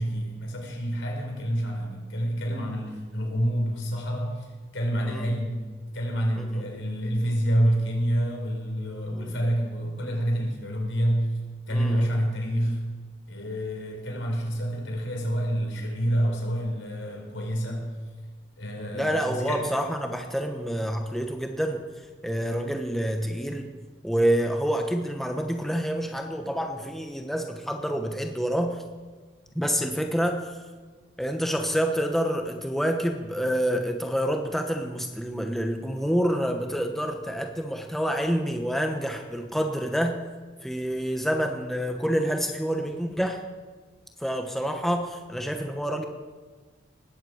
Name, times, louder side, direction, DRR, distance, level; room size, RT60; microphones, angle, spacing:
voice 1, 0.0-5.6 5.9-11.4 11.7-12.8 13.3-17.9 18.6-19.7, equal, 85° left, 1 dB, 4.5 m, -28 dB
voice 2, 11.7-12.1 18.9-21.8 22.2-23.7 24.0-28.8 29.5-30.5 31.2-40.2 40.6-43.4 44.2-46.1, equal, ahead, 3 dB, 1.1 m, -27 dB
19.5 x 8.0 x 8.0 m, 1.4 s
head